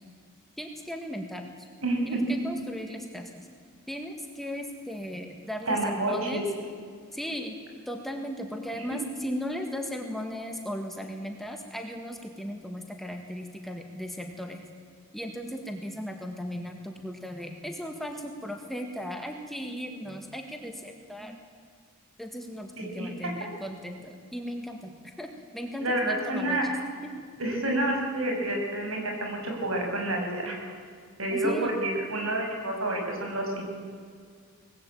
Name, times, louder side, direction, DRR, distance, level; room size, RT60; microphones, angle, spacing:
voice 1, 0.6-1.4 2.1-3.5 3.9-6.4 7.1-7.6 7.9-14.6 15.1-21.4 22.2-26.7 27.0-27.1 31.3-31.8, equal, ahead, 3 dB, 1.8 m, -36 dB
voice 2, 1.8-2.2 5.7-6.4 8.7-8.8 22.8-23.1 25.8-26.6 27.4-30.6 31.2-33.6, right 1 dB, 70° right, 1 dB, 6.8 m, -29 dB
25.5 x 20.0 x 8.8 m, 2.1 s
head